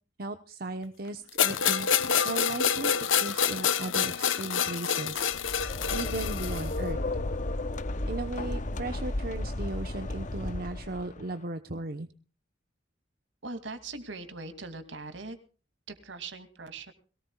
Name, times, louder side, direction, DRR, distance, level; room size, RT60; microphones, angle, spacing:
voice 1, 0.2-5.4 5.9-7.0 8.1-12.1, right 2 dB, 50° right, 7 dB, 1.0 m, -36 dB
sound 1, 1.4-6.7, left 8 dB, 80° left, 1.0 m, -27 dB
sound 2, 5.2-11.2, left 2 dB, 40° left, 0.8 m, -33 dB
voice 2, 13.4-15.4 15.9-16.9, right 3 dB, 70° right, 9 dB, 2.5 m, -41 dB
22.0 x 18.0 x 2.3 m, 0.38 s
head